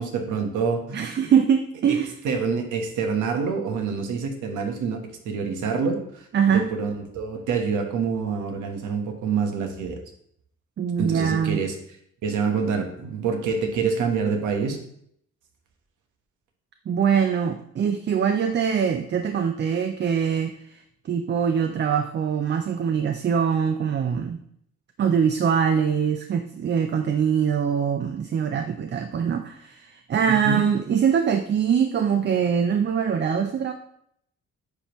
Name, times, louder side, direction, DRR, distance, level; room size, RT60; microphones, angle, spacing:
voice 1, 0.0-1.0 1.9-2.0 2.2-10.0 11.0-11.8 12.2-14.8 30.4-30.6, right 5 dB, 80° right, 4 dB, 1.2 m, -26 dB
voice 2, 0.9-2.1 6.3-6.7 10.8-11.6 16.9-20.5 21.0-24.4 25.0-33.7, right 7 dB, 35° right, 7 dB, 0.5 m, -23 dB
9.6 x 3.4 x 3.0 m, 0.70 s
cardioid pair, 90°, 30 cm